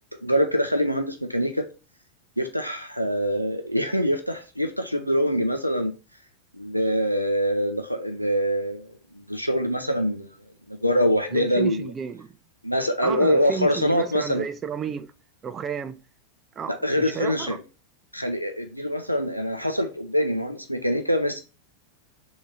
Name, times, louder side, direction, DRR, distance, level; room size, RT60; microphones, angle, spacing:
voice 1, 0.2-1.6 2.4-5.9 6.5-10.3 10.7-11.9 12.6-14.4 16.8-17.6 18.1-21.4, equal, 90° left, 0.5 m, -24 dB
voice 2, 11.3-12.3 13.0-15.1 15.4-16.0 16.6-17.6, right 7 dB, 25° right, 0.4 m, -32 dB
3.5 x 2.7 x 4.1 m
figure-of-eight pair, 90°, 0 cm